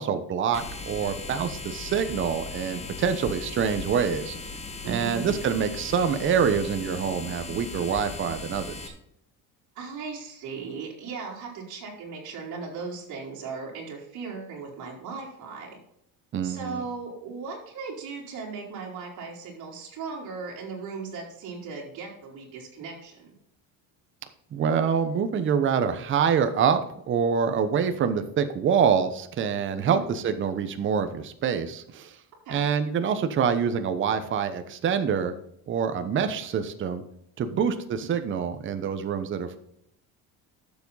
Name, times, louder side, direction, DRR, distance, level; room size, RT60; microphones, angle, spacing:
voice 1, 0.0-4.4 4.9-8.9 16.3-16.8 24.5-32.1 32.5-35.3 35.7-37.0 37.4-39.6, right 7 dB, 30° right, 9 dB, 1.0 m, -26 dB
sound 1, 0.5-8.9, left 3 dB, 15° left, 1.5 m, -38 dB
voice 2, 4.8-5.3 9.7-15.8 16.4-23.3 29.8-30.1 32.4-32.6 37.4-37.5, right 5 dB, 50° right, -2 dB, 3.9 m, -37 dB
12.0 x 7.3 x 4.0 m, 0.74 s
cardioid pair, 150°, 39 cm